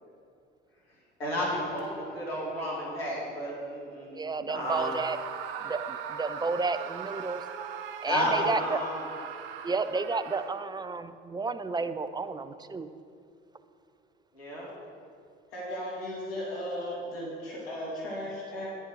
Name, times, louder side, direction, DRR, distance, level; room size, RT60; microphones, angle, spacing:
voice 1, 1.2-4.1 4.4-4.9 8.0-9.0 14.3-14.7, equal, 90° left, -5 dB, 2.2 m, -31 dB
voice 2, 4.1-5.2 5.6-7.4 8.0-8.8 9.6-12.9, right 4 dB, 15° right, 12 dB, 0.5 m, -31 dB
Screaming, 4.6-10.9, right 8 dB, 75° right, 0.6 m, -39 dB
voice 3, 15.5-18.7, equal, 75° left, -6 dB, 2.7 m, -36 dB
10.5 x 8.0 x 4.7 m, 2.4 s
hypercardioid pair, 55°, 30 cm